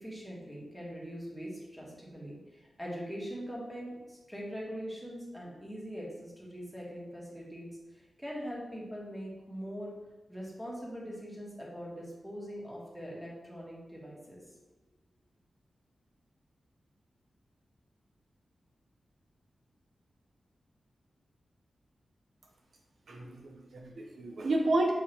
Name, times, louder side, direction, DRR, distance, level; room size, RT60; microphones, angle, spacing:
voice 1, 0.0-2.4 2.8-9.9 10.3-14.4, equal, 5° right, -4 dB, 1.4 m, -42 dB
voice 2, 23.1-24.9, right 2 dB, 70° right, 1 dB, 0.6 m, -31 dB
6.6 x 2.8 x 2.9 m, 1.1 s
wide cardioid pair, 90°, 0 cm